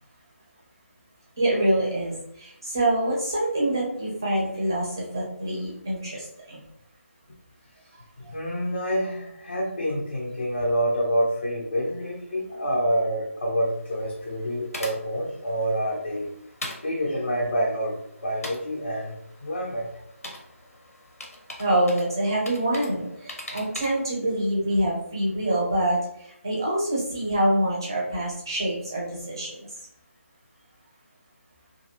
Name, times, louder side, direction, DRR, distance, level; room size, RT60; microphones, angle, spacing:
voice 1, 1.4-2.1 2.7-4.8 5.1-6.2 21.6-23.0 23.5-26.0 26.4-29.5, right 1 dB, 15° right, -4 dB, 0.5 m, -25 dB
voice 2, 8.3-16.3 16.8-19.1 19.4-19.9, equal, 45° left, -3 dB, 0.5 m, -27 dB
sound 1, 13.6-24.1, left 1 dB, 80° left, 0.8 m, -43 dB
2.5 x 2.5 x 2.9 m, 0.75 s
figure-of-eight pair, 180°, 8 cm